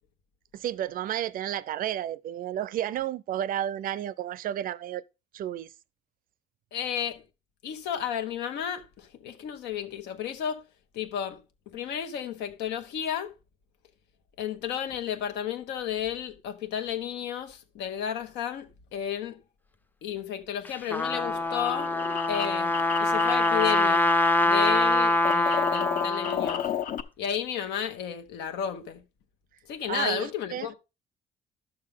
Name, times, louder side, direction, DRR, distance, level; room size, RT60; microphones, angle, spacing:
voice 1, 0.5-5.0 5.3-5.7 29.9-30.7, right 11 dB, 55° right, 0.5 m, -32 dB
voice 2, 6.7-7.2 7.6-10.6 10.9-11.4 11.7-13.3 14.4-19.4 20.0-21.9 22.3-24.1 24.4-26.7 27.2-29.0 29.7-30.7, left 9 dB, 85° left, 1.4 m, -33 dB
Trumpet, 20.6-26.6, left 2 dB, 10° left, 0.5 m, -24 dB
sound 1, 21.1-24.4 24.7-27.0, left 9 dB, 50° left, 0.9 m, -33 dB
11.5 x 6.5 x 3.7 m
cardioid pair, 110°, 17 cm